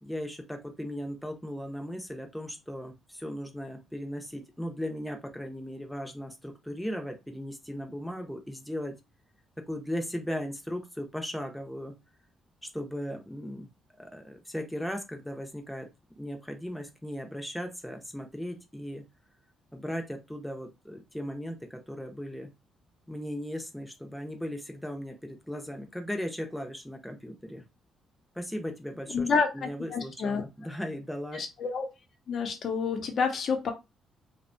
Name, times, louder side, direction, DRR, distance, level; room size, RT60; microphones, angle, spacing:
voice 1, 0.0-8.9 9.7-11.9 12.6-13.7 14.0-15.9 16.2-19.0 19.7-22.5 23.1-27.6 28.4-29.3 29.5-31.4, equal, 5° left, 3 dB, 0.6 m, -37 dB
voice 2, 29.1-30.4 31.3-31.9 32.3-33.7, left 5 dB, 55° left, 5 dB, 0.7 m, -29 dB
2.5 x 2.1 x 2.5 m, 0.24 s
cardioid pair, 90°, 0 cm